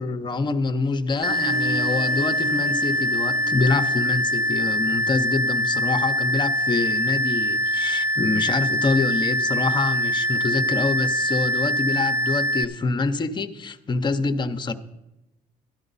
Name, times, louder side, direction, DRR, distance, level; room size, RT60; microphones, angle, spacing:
voice 1, 0.0-14.7, left 3 dB, 25° left, 0.7 m, -26 dB
sound 1, 1.1-5.3, right 4 dB, 70° right, 1.8 m, -36 dB
sound 2, 1.2-12.6, equal, 15° right, 0.6 m, -24 dB
13.0 x 10.5 x 4.0 m
cardioid pair, 110°, 17 cm